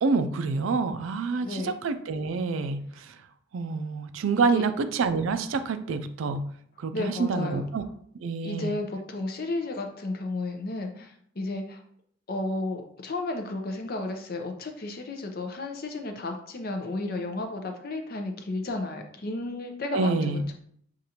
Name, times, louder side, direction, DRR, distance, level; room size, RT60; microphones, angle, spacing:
voice 1, 0.0-3.2 3.5-6.4 6.8-7.8 8.2-8.8 19.9-20.5, right 4 dB, 75° right, 10 dB, 0.4 m, -27 dB
voice 2, 1.4-1.7 4.5-4.6 6.9-7.6 8.4-11.8 12.3-20.5, left 2 dB, 45° left, 4 dB, 0.6 m, -33 dB
6.5 x 2.5 x 2.8 m, 0.64 s
head